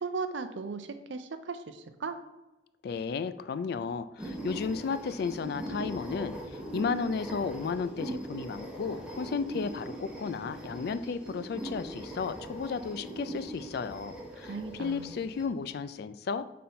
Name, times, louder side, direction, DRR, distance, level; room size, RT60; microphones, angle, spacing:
voice 1, 0.0-2.2 14.3-15.1, right 4 dB, 80° right, 10 dB, 0.5 m, -37 dB
voice 2, 2.8-6.3 6.7-16.4, left 5 dB, 60° left, 12 dB, 0.3 m, -34 dB
sound 1, 4.2-15.5, right 1 dB, 5° right, 0.9 m, -41 dB
5.5 x 4.2 x 4.3 m, 1.0 s
head